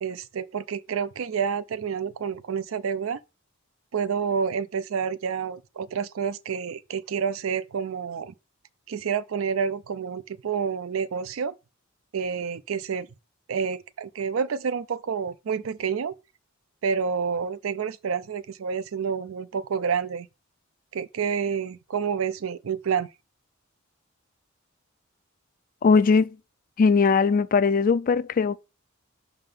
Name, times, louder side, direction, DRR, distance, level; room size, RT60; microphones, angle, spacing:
voice 1, 0.0-3.2 3.9-8.3 8.9-11.5 12.1-13.1 13.5-16.1 16.8-20.3 20.9-23.1, right 6 dB, 75° right, 0.4 m, -29 dB
voice 2, 25.8-26.4 26.8-28.6, left 5 dB, 40° left, 0.3 m, -20 dB
5.7 x 3.6 x 5.3 m
head